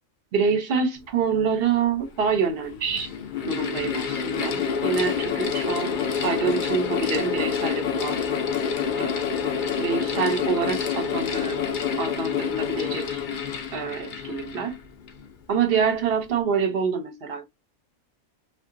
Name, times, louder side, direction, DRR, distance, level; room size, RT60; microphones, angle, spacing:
voice 1, 0.3-3.1 3.5-8.3 9.0-9.1 9.8-11.6 12.0-13.2 13.7-14.8 15.5-17.4, right 6 dB, 55° right, 0.8 m, -26 dB
Mechanical fan, 1.7-1.8 2.6-15.3, left 7 dB, 55° left, 0.6 m, -27 dB
2.8 x 2.4 x 2.6 m
omnidirectional pair, 1.4 m